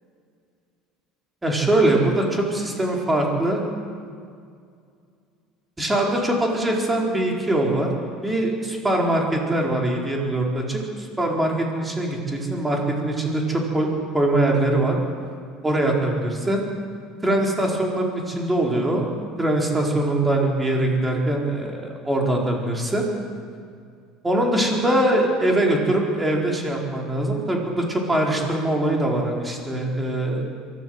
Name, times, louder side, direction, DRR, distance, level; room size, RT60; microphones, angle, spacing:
voice 1, 1.4-3.6 5.8-7.9 8.2-15.0 15.6-16.6 17.2-19.1 19.4-23.1 24.2-30.4, right 1 dB, 15° right, 0 dB, 4.6 m, -22 dB
23.5 x 13.5 x 8.0 m, 2.2 s
supercardioid pair, 110°, 0 cm